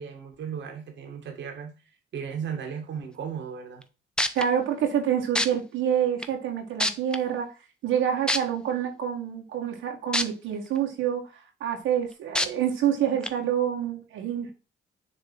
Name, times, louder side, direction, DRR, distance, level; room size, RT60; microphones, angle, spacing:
voice 1, 0.0-1.7 2.1-3.8, right 7 dB, 65° right, 1.7 m, -35 dB
sound 1, 3.8-3.9 4.2-4.4 5.4-5.5 6.2-6.3 6.8-7.2 8.3-8.4 10.1-10.2 10.8-10.9 12.4-12.5 13.2-13.3, left 1 dB, 5° left, 0.7 m, -24 dB
voice 2, 4.3-7.5 7.8-11.3 11.6-14.5, right 9 dB, 90° right, 1.8 m, -27 dB
6.8 x 3.3 x 5.9 m
cardioid pair, 90°, 20 cm